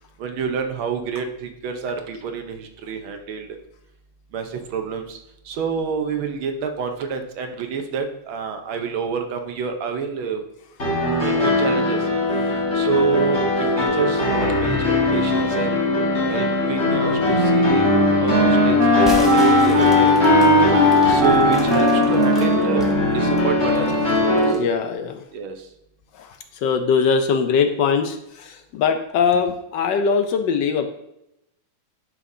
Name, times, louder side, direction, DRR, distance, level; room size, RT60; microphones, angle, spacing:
voice 1, 0.2-3.5 4.3-5.2 5.5-10.4 11.2-12.0 12.7-13.4 13.8-15.8 16.3-17.9 18.2-18.8 19.1-20.1 21.1-22.9 23.1-23.9 24.3-24.5 25.3-25.5, right 5 dB, 70° right, 5 dB, 1.6 m, -27 dB
sound 1, 10.8-24.5, left 3 dB, 35° left, 1.9 m, -20 dB
Wind instrument woodwind instrument, 16.8-24.0, right 1 dB, 50° right, 1.5 m, -19 dB
sound 2, 19.0-22.9 23.4-24.7, right 1 dB, ahead, 0.9 m, -36 dB
voice 2, 24.6-25.2 26.1-30.9, left 6 dB, 70° left, 7 dB, 1.1 m, -21 dB
11.0 x 5.7 x 2.7 m, 0.83 s
omnidirectional pair, 2.3 m